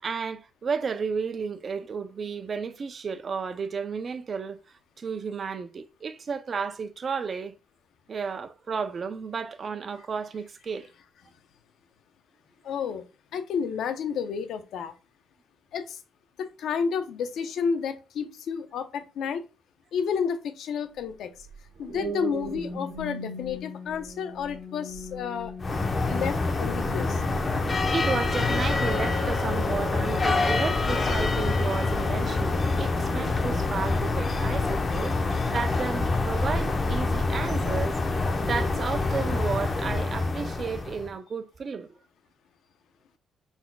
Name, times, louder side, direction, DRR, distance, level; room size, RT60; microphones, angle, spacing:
voice 1, 0.0-4.6 5.0-7.5 8.1-10.9 27.6-41.9, right 5 dB, 45° right, 0.5 m, -33 dB
voice 2, 12.6-13.0 13.3-14.9 15.7-16.0 16.4-19.4 19.9-21.3 21.8-25.5 26.0-27.2, left 6 dB, 75° left, 0.7 m, -31 dB
sound 1, 21.4-32.0 32.6-32.8, right 2 dB, 70° right, 1.7 m, -40 dB
sound 2, 25.6-41.1, left 3 dB, 30° left, 0.8 m, -26 dB
5.7 x 4.1 x 2.3 m
cardioid pair, 90°, 0 cm